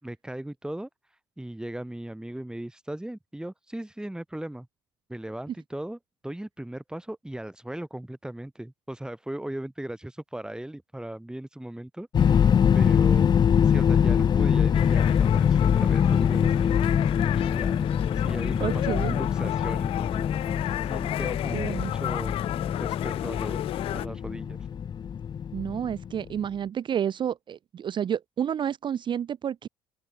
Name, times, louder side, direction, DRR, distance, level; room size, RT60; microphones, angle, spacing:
voice 1, 0.0-0.9 1.4-4.7 5.1-13.3 13.6-16.9 17.3-17.8 18.2-22.4 22.7-24.6, right 1 dB, 5° right, 7.0 m, -38 dB
sound 1, 12.1-26.2, left 8 dB, 40° left, 0.7 m, -24 dB
sound 2, 14.7-24.1, left 14 dB, 55° left, 0.4 m, -34 dB
voice 2, 18.6-19.2 21.5-21.9 25.5-29.7, right 9 dB, 45° right, 0.8 m, -30 dB
open air
hypercardioid pair, 65°, 11 cm